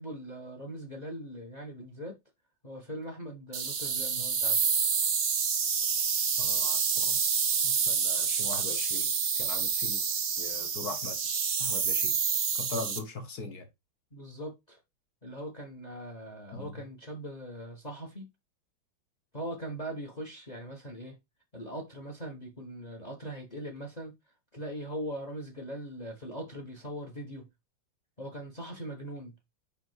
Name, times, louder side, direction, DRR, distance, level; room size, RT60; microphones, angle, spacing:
voice 1, 0.0-2.1 2.6-4.6 14.1-14.8 15.2-18.3 19.3-21.2 21.5-24.1 24.5-27.5 28.2-29.3, equal, 25° left, 1.1 m, -40 dB
sound 1, 3.5-13.0, right 6 dB, 80° right, 0.4 m, -28 dB
voice 2, 6.4-7.2 7.6-9.1 9.4-10.0 10.4-11.2 11.6-12.2 12.6-13.7 16.5-16.8, left 3 dB, 55° left, 1.6 m, -40 dB
5.5 x 4.9 x 4.5 m
omnidirectional pair, 2.2 m